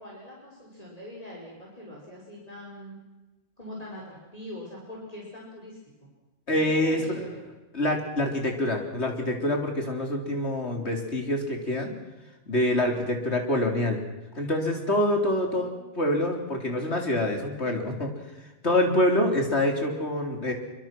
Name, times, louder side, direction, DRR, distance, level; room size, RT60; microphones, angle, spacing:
voice 1, 0.0-3.0 3.6-5.8 6.5-7.4 15.1-16.4, left 1 dB, 30° left, -3 dB, 5.4 m, -43 dB
voice 2, 6.5-7.3 7.7-12.0 12.5-14.0 14.3-15.7 16.0-18.1 18.6-20.5, left 1 dB, 60° left, 3 dB, 4.2 m, -26 dB
26.0 x 24.5 x 6.1 m, 1.1 s
omnidirectional pair, 1.2 m